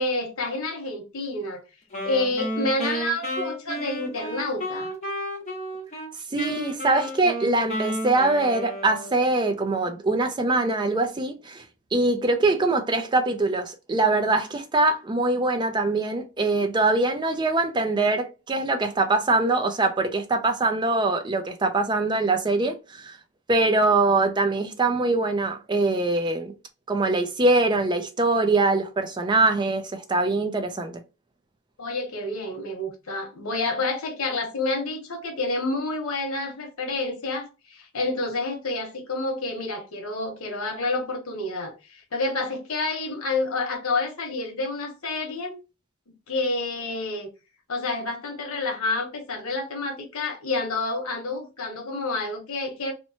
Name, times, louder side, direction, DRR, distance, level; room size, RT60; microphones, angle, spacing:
voice 1, 0.0-1.6 2.0-4.9 31.8-45.5 46.3-47.3 47.7-52.9, left 2 dB, 90° left, 0.9 m, -29 dB
Wind instrument woodwind instrument, 1.9-6.1 6.4-9.3, equal, 35° left, 0.9 m, -32 dB
voice 2, 6.3-11.6 11.9-23.2 23.5-26.5 26.9-31.0, right 2 dB, 20° right, 0.3 m, -23 dB
2.9 x 2.1 x 2.6 m
head